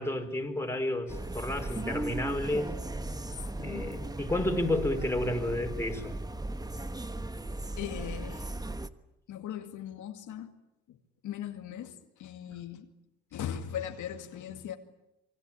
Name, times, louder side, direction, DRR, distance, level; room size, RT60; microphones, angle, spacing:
voice 1, 0.0-2.9 3.6-6.1, left 1 dB, 10° left, 4 dB, 4.5 m, -31 dB
sound 1, 1.1-8.9, right 2 dB, 15° right, 1.2 m, -37 dB
voice 2, 1.9-2.2 3.6-4.1 7.8-8.5 9.3-10.5 10.9-11.0 11.2-12.9 13.3-14.8, left 10 dB, 80° left, 5 dB, 2.3 m, -39 dB
26.5 x 23.0 x 8.8 m, 0.89 s
cardioid pair, 90°, 30 cm